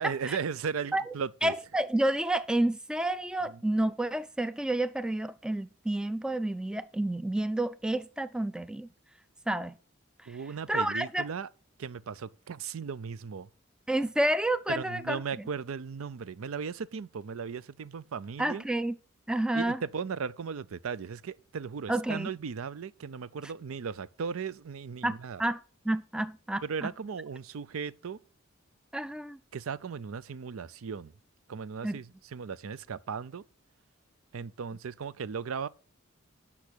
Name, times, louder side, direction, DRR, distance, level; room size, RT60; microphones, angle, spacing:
voice 1, 0.0-1.5 3.4-3.6 10.3-11.5 11.8-13.5 14.7-18.6 19.5-25.4 26.6-28.2 29.5-31.1 31.5-33.4 34.3-35.7, right 6 dB, 85° right, 0.5 m, -37 dB
voice 2, 1.4-8.9 9.5-9.7 10.7-11.3 13.9-15.2 18.4-18.9 19.3-19.8 21.9-22.3 25.0-25.6 25.9-26.9 28.9-29.4 31.8-32.0, right 1 dB, 5° right, 0.3 m, -29 dB
8.4 x 6.0 x 6.1 m
head